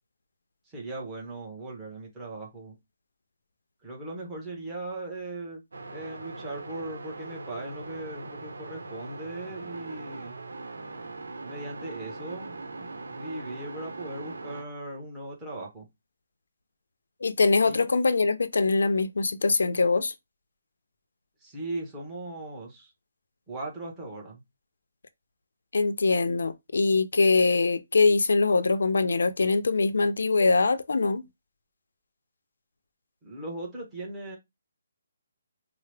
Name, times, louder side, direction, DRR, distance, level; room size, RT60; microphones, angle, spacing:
voice 1, 0.6-2.8 3.8-5.6 5.9-10.3 11.4-15.9 17.6-17.9 21.4-22.9 23.5-24.4 33.2-34.4, right 2 dB, 10° right, 0.9 m, -38 dB
sound 1, 5.7-14.6, right 3 dB, 90° right, 0.8 m, -41 dB
voice 2, 17.2-20.1 25.7-31.2, left 3 dB, 80° left, 0.5 m, -23 dB
4.5 x 2.0 x 3.3 m
hypercardioid pair, 175°, 0 cm